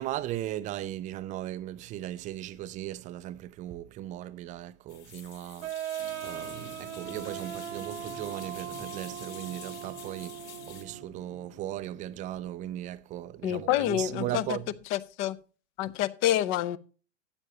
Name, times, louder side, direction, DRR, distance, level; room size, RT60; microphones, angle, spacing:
voice 1, 0.0-5.7 6.2-14.7, right 13 dB, 20° right, 0.4 m, -37 dB
sound 1, 4.9-10.8, left 8 dB, 60° left, 4.7 m, -48 dB
sound 2, 5.6-11.1, right 12 dB, 70° right, 1.1 m, -39 dB
sound 3, 6.0-13.5, left 4 dB, 90° left, 2.2 m, -51 dB
voice 2, 13.4-14.6 14.9-15.4 15.8-16.8, left 13 dB, 35° left, 0.7 m, -27 dB
12.5 x 9.3 x 2.8 m
hypercardioid pair, 120°, 39 cm